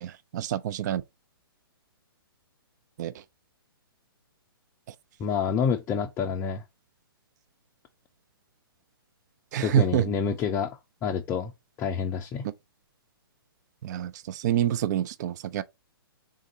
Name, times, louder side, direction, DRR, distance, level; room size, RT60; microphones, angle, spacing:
voice 1, 0.0-1.0 3.0-3.1 9.5-10.1 13.8-15.6, right 11 dB, 50° right, 0.4 m, -27 dB
voice 2, 5.2-6.6 9.6-11.5 11.8-12.5, left 6 dB, 20° left, 0.4 m, -28 dB
3.7 x 2.6 x 3.9 m
hypercardioid pair, 135°, 12 cm